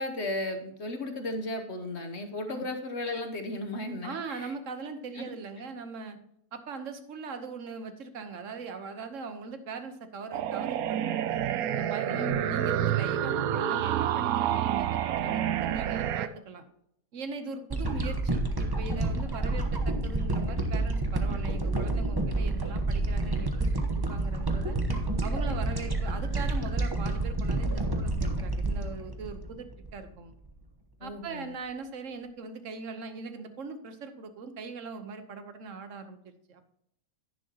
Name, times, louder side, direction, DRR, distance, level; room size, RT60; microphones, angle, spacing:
voice 1, 0.0-4.5 5.1-5.3 12.1-12.6 31.0-31.5, left 1 dB, 50° left, 5 dB, 1.1 m, -35 dB
voice 2, 4.0-6.2 6.5-11.4 11.7-16.7 17.1-24.8 25.2-30.3 31.0-36.7, right 4 dB, 55° right, 9 dB, 1.3 m, -40 dB
FM Waves, 10.3-16.3, right 10 dB, 75° right, 1.0 m, -28 dB
sound 1, 17.7-30.0 30.5-30.6, right 2 dB, 20° right, 0.9 m, -29 dB
10.5 x 10.0 x 2.9 m, 0.74 s
omnidirectional pair, 1.7 m